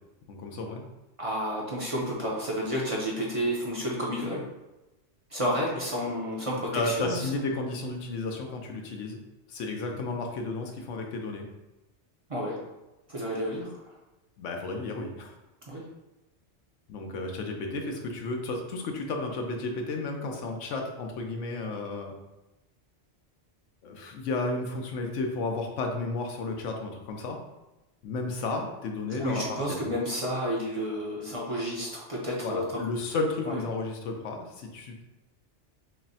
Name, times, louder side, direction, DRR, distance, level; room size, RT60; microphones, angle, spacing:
voice 1, 0.3-0.8 6.7-9.2 9.5-11.5 14.4-15.3 16.9-22.1 23.8-27.4 28.0-29.8 32.4-35.0, left 3 dB, 90° left, 3 dB, 1.0 m, -33 dB
voice 2, 1.2-4.5 5.3-7.3 12.3-12.6 13.1-13.7 15.7-15.9 29.2-32.9 33.5-33.6, equal, 35° right, -4 dB, 0.6 m, -31 dB
6.1 x 2.0 x 2.7 m, 1.0 s
omnidirectional pair, 1.2 m